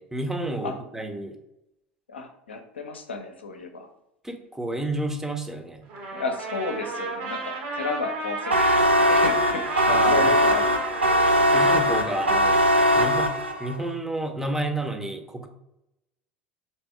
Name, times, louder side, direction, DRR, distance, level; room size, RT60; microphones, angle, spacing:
voice 1, 0.0-1.3 4.2-5.9 9.9-10.6 11.5-12.6 13.0-13.3 13.6-15.5, right 1 dB, 5° right, 5 dB, 0.7 m, -30 dB
voice 2, 2.1-3.9 6.1-10.7 11.0-11.1, left 3 dB, 80° left, 5 dB, 0.6 m, -33 dB
Trumpet, 5.9-12.4, right 2 dB, 55° right, 1.2 m, -33 dB
sound 1, 8.5-13.8, equal, 85° right, 0.4 m, -20 dB
3.4 x 3.0 x 4.3 m, 0.86 s
figure-of-eight pair, 70°, 6 cm